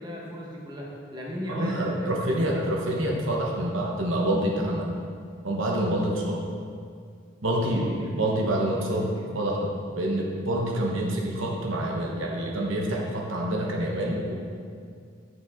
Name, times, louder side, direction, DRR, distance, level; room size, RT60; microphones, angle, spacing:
voice 1, 0.0-2.6 7.6-8.2 8.6-9.3, equal, 20° right, -4 dB, 1.2 m, -37 dB
voice 2, 1.5-4.9 5.4-6.4 7.4-7.9 8.2-14.3, right 1 dB, 65° right, -2 dB, 1.1 m, -27 dB
10.5 x 6.2 x 3.6 m, 2.2 s
head